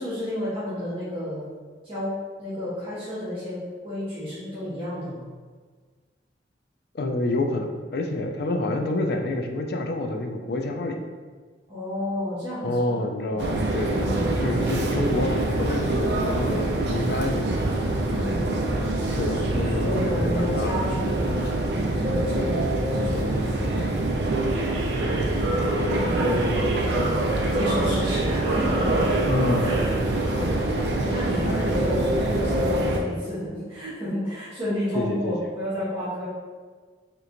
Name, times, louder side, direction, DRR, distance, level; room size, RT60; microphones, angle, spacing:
voice 1, 0.0-1.5 1.8-5.2 11.7-13.0 13.3-13.6 13.9-14.3 18.1-18.5 19.3-21.6 21.9-22.5 22.9-23.3 23.7-24.2 25.4-26.7 26.9-29.3 29.5-30.6 31.0-36.3, equal, 30° right, -13 dB, 1.1 m, -31 dB
voice 2, 6.9-11.0 12.6-14.1 14.4-17.5 19.1-20.8 25.8-27.2 27.4-27.7 29.3-29.7 31.4-31.7 34.9-35.4, left 2 dB, 55° left, 4 dB, 0.3 m, -28 dB
sound 1, 13.4-33.0, right 2 dB, 65° right, 0.4 m, -25 dB
3.2 x 2.9 x 2.5 m, 1.5 s
head